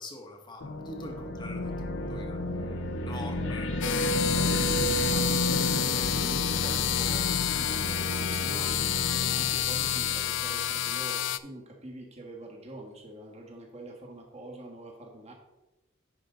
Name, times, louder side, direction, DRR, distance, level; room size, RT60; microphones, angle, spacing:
voice 1, 0.0-1.7 2.1-2.8 3.1-3.7, left 1 dB, 25° left, 4 dB, 1.0 m, -44 dB
sound 1, 0.6-10.8, equal, 90° left, 0.9 m, -32 dB
voice 2, 3.1-4.0 4.3-15.3, right 1 dB, 35° right, 1 dB, 1.5 m, -44 dB
sound 2, 3.8-11.4, left 13 dB, 75° left, 0.4 m, -29 dB
9.7 x 5.2 x 3.8 m, 1.0 s
head